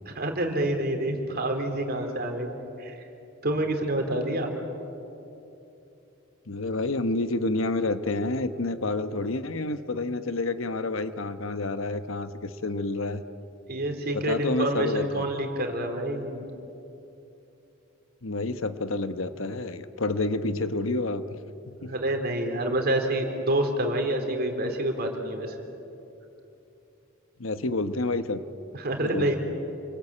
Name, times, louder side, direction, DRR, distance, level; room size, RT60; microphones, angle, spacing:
voice 1, 0.1-2.5 2.8-2.9 3.4-4.6 13.7-16.4 21.9-25.6 28.7-29.4, right 1 dB, 50° right, 3 dB, 3.5 m, -27 dB
voice 2, 6.5-13.2 14.1-15.2 18.2-21.2 21.8-21.9 27.4-28.4 29.0-29.3, left 2 dB, 85° left, 11 dB, 1.1 m, -29 dB
29.0 x 22.0 x 8.7 m, 2.9 s
head